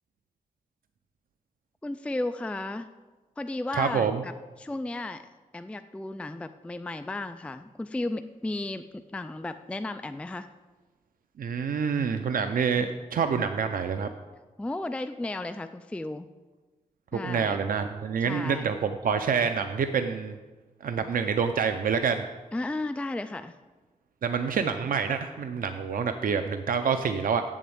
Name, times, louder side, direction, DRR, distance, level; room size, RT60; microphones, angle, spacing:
voice 1, 1.8-2.9 3.4-4.3 4.6-5.2 5.5-10.5 14.6-16.3 17.1-17.6 18.2-18.7 22.5-23.5, left 2 dB, 10° left, 9 dB, 0.3 m, -34 dB
voice 2, 3.7-4.2 11.4-14.1 17.2-20.4 20.8-22.2 24.2-27.4, right 6 dB, 90° right, 8 dB, 0.6 m, -27 dB
7.8 x 7.3 x 8.6 m, 1.2 s
wide cardioid pair, 130°, 14 cm